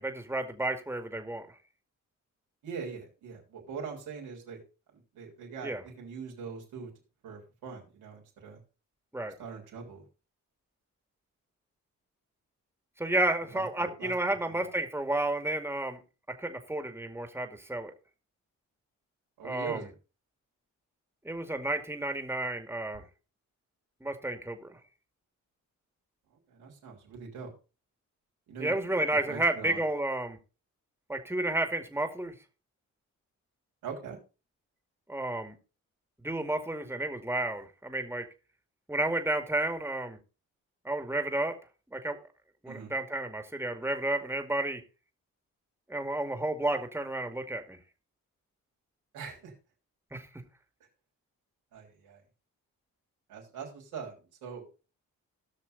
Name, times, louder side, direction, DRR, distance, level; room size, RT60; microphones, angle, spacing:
voice 1, 0.0-1.4 5.6-5.8 9.1-9.3 13.0-16.0 16.4-17.9 19.4-19.8 21.2-23.0 24.0-24.7 28.6-30.4 31.1-32.3 35.1-35.6 36.2-38.3 38.9-40.2 40.8-41.5 41.9-42.2 42.6-44.8 45.9-47.8 50.1-50.3, right 1 dB, 5° right, 6 dB, 2.1 m, -31 dB
voice 2, 2.6-4.6 5.1-6.9 7.2-8.6 9.4-10.0 13.5-14.1 14.5-14.7 19.4-19.9 26.5-27.5 28.5-29.0 29.3-29.8 33.8-34.2 42.7-42.9 49.1-49.5 51.7-52.2 53.3-54.7, right 6 dB, 85° right, -1 dB, 3.6 m, -42 dB
17.0 x 6.1 x 4.0 m, 0.33 s
supercardioid pair, 45°, 36 cm